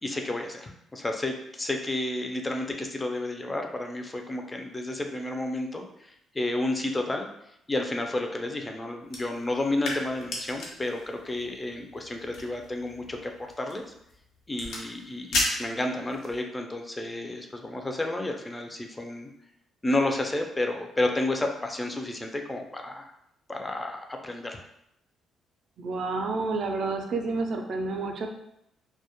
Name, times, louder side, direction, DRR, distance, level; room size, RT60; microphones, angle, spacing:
voice 1, 0.0-7.3 7.7-13.8 14.5-19.3 19.8-23.1 23.5-24.6, left 2 dB, 20° left, 3 dB, 0.4 m, -31 dB
sound 1, 9.0-16.4, left 2 dB, 75° left, 0.6 m, -36 dB
voice 2, 25.8-28.3, right 3 dB, 65° right, 4 dB, 0.4 m, -29 dB
2.2 x 2.0 x 2.8 m, 0.79 s
cardioid pair, 90°, 0 cm